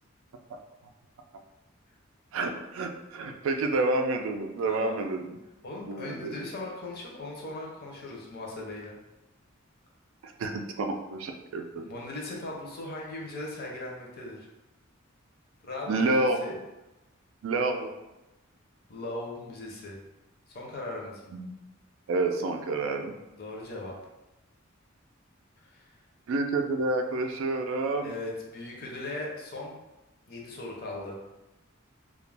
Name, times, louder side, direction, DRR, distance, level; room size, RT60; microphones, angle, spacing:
voice 1, 2.3-5.4 5.9-6.4 10.2-11.9 15.9-16.5 17.4-17.9 21.3-21.5 22.1-23.1 26.3-28.1, right 2 dB, 70° right, 5 dB, 0.3 m, -29 dB
voice 2, 4.7-5.0 5.6-9.0 11.8-14.5 15.7-16.6 18.9-20.0 20.5-21.4 23.4-23.9 25.7-25.9 28.0-29.8 30.3-31.2, left 2 dB, 50° left, -2 dB, 0.6 m, -38 dB
2.3 x 2.1 x 3.3 m, 1.0 s
head